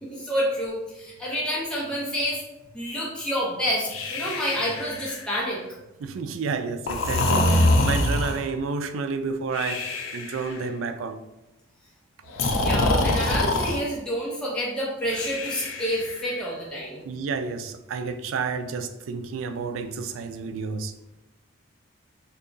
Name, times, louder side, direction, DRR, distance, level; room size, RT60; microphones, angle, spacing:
voice 1, 0.0-2.4 2.7-5.6 12.5-17.0, equal, 5° left, 0.7 m, -28 dB
Breathing, 3.9-5.4 6.9-8.5 9.5-10.5 12.3-13.8 15.1-16.3, left 1 dB, 70° left, 0.5 m, -24 dB
voice 2, 6.0-11.2 17.0-20.9, right 4 dB, 70° right, 0.3 m, -30 dB
3.6 x 2.3 x 3.8 m
head